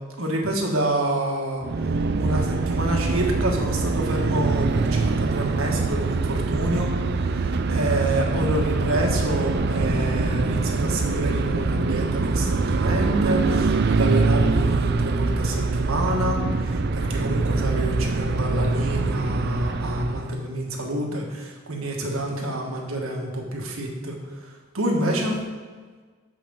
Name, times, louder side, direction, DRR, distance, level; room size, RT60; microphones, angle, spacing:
voice 1, 0.2-1.6 2.1-6.9 7.3-24.2 24.7-25.4, right 1 dB, 80° right, 0 dB, 1.5 m, -27 dB
sound 1, 1.6-20.4, right 3 dB, 50° right, 0.4 m, -24 dB
6.1 x 5.9 x 6.9 m, 1.5 s
head